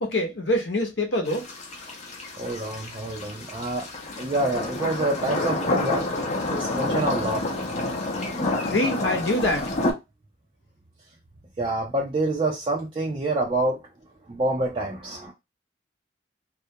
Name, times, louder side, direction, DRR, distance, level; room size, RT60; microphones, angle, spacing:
voice 1, 0.0-1.5 8.7-9.7, left 1 dB, 75° left, 0.7 m, -25 dB
sound 1, 1.3-9.9, left 2 dB, 40° left, 0.6 m, -29 dB
voice 2, 2.4-3.9 4.2-6.2 6.5-7.4 11.6-13.8 14.3-15.3, right 2 dB, 30° right, 0.5 m, -27 dB
2.3 x 2.1 x 2.7 m
head